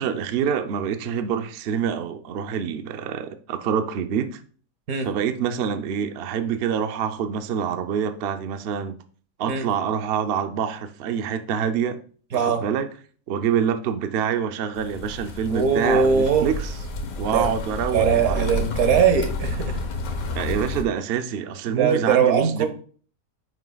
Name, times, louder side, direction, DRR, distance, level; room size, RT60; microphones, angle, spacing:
voice 1, 0.0-4.4 5.0-8.9 9.4-12.0 12.3-12.9 13.3-16.7 17.2-18.6 20.3-22.7, right 8 dB, 55° right, 0.7 m, -26 dB
voice 2, 12.3-12.6 15.5-16.5 17.3-17.5 17.9-19.8 20.5-20.6 21.6-22.7, right 6 dB, 85° right, 1.5 m, -21 dB
sound 1, 14.8-20.8, left 2 dB, 80° left, 1.4 m, -30 dB
9.1 x 6.2 x 2.3 m
omnidirectional pair, 1.5 m